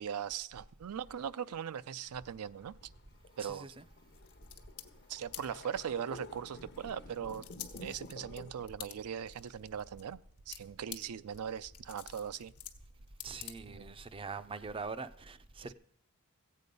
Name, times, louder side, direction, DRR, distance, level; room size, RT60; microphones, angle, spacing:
voice 1, 0.0-2.7 3.4-3.7 5.1-7.4 7.8-10.2 10.5-12.5 13.7-14.0, right 8 dB, 75° right, 0.4 m, -40 dB
sound 1, 1.0-8.7, left 2 dB, 50° left, 0.8 m, -53 dB
voice 2, 3.4-3.8 13.2-15.7, right 4 dB, 25° right, 0.5 m, -43 dB
sound 2, 4.1-14.0, left 10 dB, 70° left, 1.1 m, -51 dB
15.0 x 8.4 x 5.3 m
head